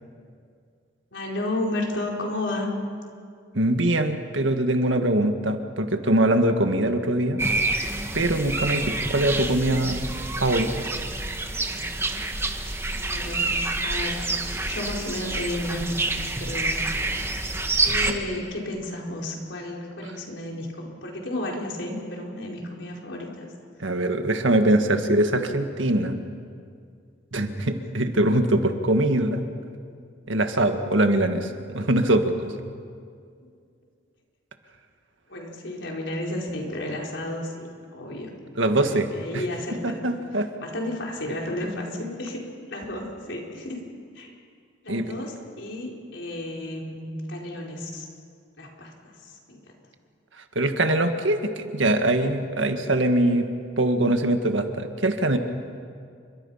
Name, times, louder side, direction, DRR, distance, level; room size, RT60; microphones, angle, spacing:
voice 1, 1.1-2.7 9.6-9.9 12.9-13.5 13.8-14.3 14.6-16.8 17.8-23.5 35.3-37.7 37.9-38.3 38.8-40.0 40.6-42.4 42.7-43.8 44.1-44.3 44.8-48.1 48.6-49.6, left 1 dB, 70° left, -1 dB, 4.9 m, -32 dB
voice 2, 3.5-7.4 8.1-10.1 10.4-10.9 23.8-26.2 27.3-29.5 30.3-32.5 38.6-39.4 39.8-40.5 44.9-45.1 50.6-53.5 53.8-55.4, right 1 dB, 85° right, 6 dB, 1.9 m, -23 dB
sound 1, 7.4-18.1, right 2 dB, 15° right, 1.5 m, -27 dB
29.5 x 24.5 x 5.8 m, 2.2 s
head